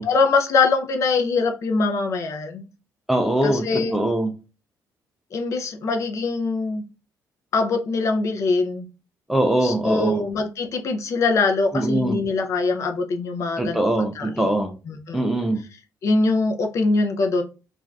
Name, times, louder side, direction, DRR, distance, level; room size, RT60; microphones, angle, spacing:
voice 1, 0.0-2.7 3.4-4.0 5.3-6.8 7.5-8.9 9.6-14.5 14.9-15.2 16.0-17.4, left 3 dB, 45° left, 0.5 m, -23 dB
voice 2, 3.1-4.3 9.3-10.2 11.7-12.2 13.6-14.7 15.1-15.6, right 1 dB, 5° right, 0.3 m, -22 dB
2.6 x 2.3 x 3.1 m
cardioid pair, 170°, 7 cm